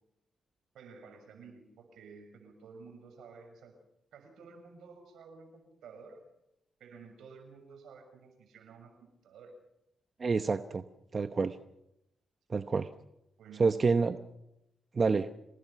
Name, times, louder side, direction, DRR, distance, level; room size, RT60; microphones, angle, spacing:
voice 1, 0.7-3.8 4.1-6.2 6.8-9.5 13.4-14.0, right 5 dB, 85° right, 5 dB, 6.7 m, -52 dB
voice 2, 10.2-10.8 11.1-11.6 12.5-12.9 13.6-14.2 14.9-15.3, right 4 dB, 45° right, 10 dB, 1.0 m, -27 dB
27.5 x 19.5 x 5.9 m, 0.84 s
cardioid pair, 65°, 0 cm